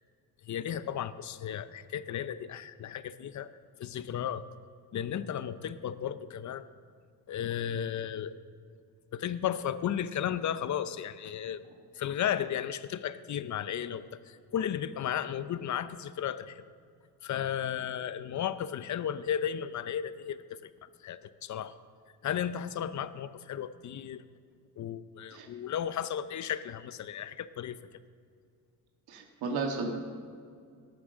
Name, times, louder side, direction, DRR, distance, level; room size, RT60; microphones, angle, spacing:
voice 1, 0.5-3.5 3.8-4.4 4.9-6.7 7.3-8.4 9.1-11.6 11.9-16.6 17.2-20.6 21.0-21.7 22.2-24.2 24.8-27.8, left 9 dB, 50° left, 14 dB, 0.6 m, -34 dB
voice 2, 29.1-29.9, right 4 dB, 80° right, 2 dB, 1.7 m, -33 dB
18.0 x 6.1 x 6.3 m, 2.2 s
cardioid pair, 85°, 37 cm